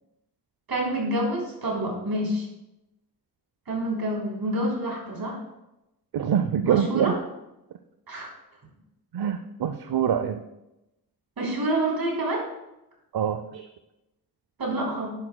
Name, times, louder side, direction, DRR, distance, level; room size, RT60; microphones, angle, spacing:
voice 1, 0.7-2.5 3.7-5.4 6.6-7.2 8.1-8.3 11.4-12.5 14.6-15.1, right 1 dB, 70° right, -2 dB, 3.6 m, -27 dB
voice 2, 6.1-7.2 9.1-10.4 13.1-13.7, right 9 dB, 85° right, 9 dB, 0.6 m, -25 dB
11.0 x 11.0 x 2.2 m, 0.92 s
wide cardioid pair, 120°, 38 cm